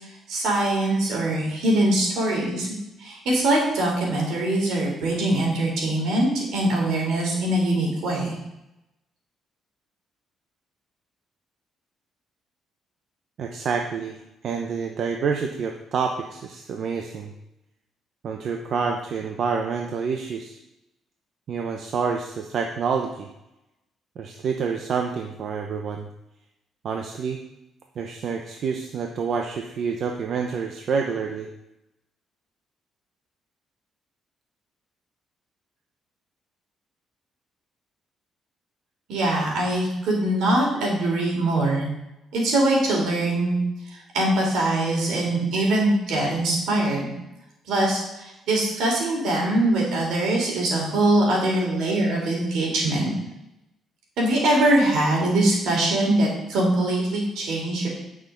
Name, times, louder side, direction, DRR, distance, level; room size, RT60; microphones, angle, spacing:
voice 1, 0.3-2.7 3.0-8.3 39.1-41.8 42.3-43.6 43.9-47.1 47.7-53.1 54.2-57.9, right 1 dB, 80° right, -1 dB, 3.8 m, -22 dB
voice 2, 13.4-14.2 14.4-17.3 18.2-20.6 21.5-23.3 24.2-26.1 26.8-27.4 28.0-31.5, right 5 dB, 55° right, 3 dB, 0.8 m, -28 dB
9.9 x 6.2 x 5.2 m, 0.91 s
cardioid pair, 115°, 0 cm